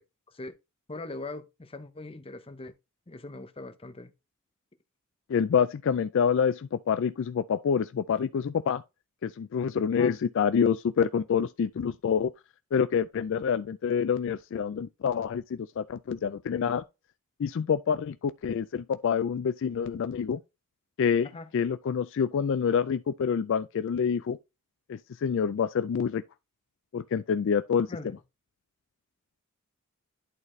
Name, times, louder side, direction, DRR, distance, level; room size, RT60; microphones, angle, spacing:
voice 1, 0.9-2.7 3.1-4.1 9.9-10.1 21.3-21.5 27.9-28.2, left 2 dB, 25° left, 0.7 m, -41 dB
voice 2, 5.3-8.8 9.2-12.3 12.7-16.8 17.4-20.4 21.0-21.3 21.5-24.4 24.9-26.2 26.9-27.9, left 7 dB, 60° left, 0.3 m, -27 dB
11.0 x 4.1 x 3.1 m
head